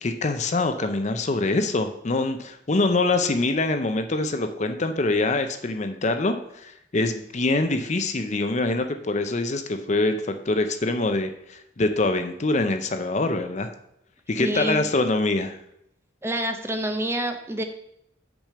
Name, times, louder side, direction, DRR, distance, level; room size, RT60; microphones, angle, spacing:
voice 1, 0.0-13.7 14.3-15.6, left 2 dB, 40° left, 8 dB, 0.6 m, -24 dB
voice 2, 14.4-14.8 16.2-17.6, right 1 dB, 15° right, 6 dB, 0.6 m, -27 dB
6.1 x 5.0 x 6.7 m, 0.76 s
head